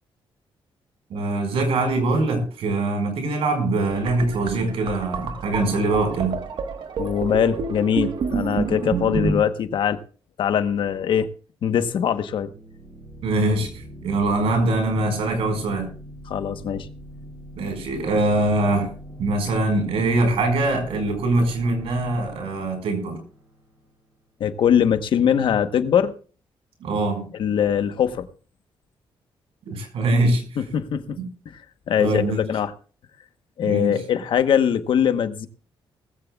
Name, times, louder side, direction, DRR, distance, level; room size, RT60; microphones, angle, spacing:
voice 1, 1.1-6.4 13.2-15.9 17.6-18.9 19.2-23.2 26.8-27.3 29.6-30.4 31.2-31.3 32.0-32.4 33.6-34.0, right 2 dB, 90° right, 5 dB, 5.1 m, -23 dB
sound 1, 3.9-9.4, right 5 dB, 55° right, 1.4 m, -29 dB
voice 2, 7.0-10.0 10.4-11.3 11.6-12.5 16.3-16.9 24.4-26.1 27.4-28.3 30.6-31.2 31.9-32.7 33.6-35.5, left 8 dB, 60° left, 10 dB, 1.1 m, -22 dB
sound 2, 12.5-24.1, equal, 30° right, 7.3 m, -42 dB
19.5 x 15.0 x 2.4 m, 0.38 s
wide cardioid pair, 180°, 10 cm